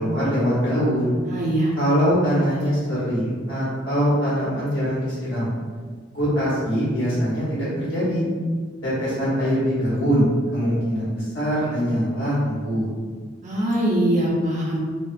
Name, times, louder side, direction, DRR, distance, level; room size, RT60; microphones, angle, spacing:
voice 1, 0.0-1.1 1.8-5.5 6.1-8.2 8.8-12.9, equal, 75° left, -9 dB, 1.2 m, -22 dB
voice 2, 1.2-1.7 13.4-14.8, right 1 dB, 40° right, -5 dB, 0.6 m, -22 dB
2.6 x 2.4 x 2.4 m, 1.5 s
head